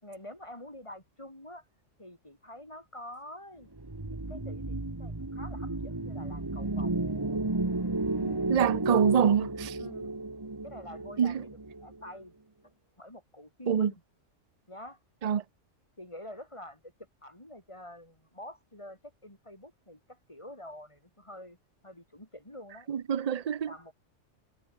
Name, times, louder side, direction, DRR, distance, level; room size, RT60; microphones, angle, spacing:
voice 1, 0.0-1.6 2.0-3.7 4.1-6.9 9.8-10.1 10.6-11.5 11.8-12.4 12.6-14.0 14.7-15.0 16.0-16.9 17.2-21.6 21.8-22.9 23.7-23.9, left 1 dB, 25° left, 4.3 m, -47 dB
sound 1, 3.8-12.1, right 2 dB, 20° right, 1.4 m, -33 dB
voice 2, 8.2-9.8 11.2-11.4 13.7-13.9 15.2-15.4 22.9-23.7, right 8 dB, 40° right, 0.7 m, -26 dB
omnidirectional pair, 1.3 m